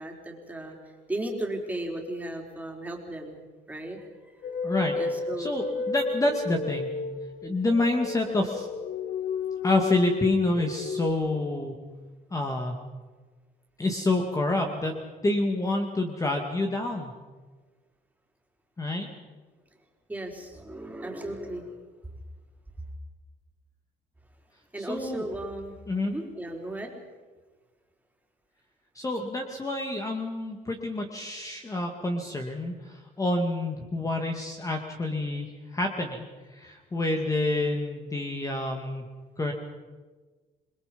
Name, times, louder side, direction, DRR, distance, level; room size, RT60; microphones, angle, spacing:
voice 1, 0.0-4.4 4.9-5.6 20.1-21.7 24.7-25.8 26.0-27.0, right 1 dB, 10° right, 1 dB, 4.5 m, -36 dB
sound 1, 4.4-11.1, left 4 dB, 55° left, 1.5 m, -32 dB
voice 2, 4.6-5.0 5.4-6.9 7.4-8.7 9.6-11.8 12.3-12.7 13.8-14.9 15.2-17.1 18.8-19.1 24.8-25.2 25.9-26.1 28.9-36.2 36.5-39.0 39.4-39.5, left 2 dB, 20° left, 3 dB, 2.3 m, -28 dB
28.0 x 21.5 x 5.4 m, 1.3 s
cardioid pair, 110°, 17 cm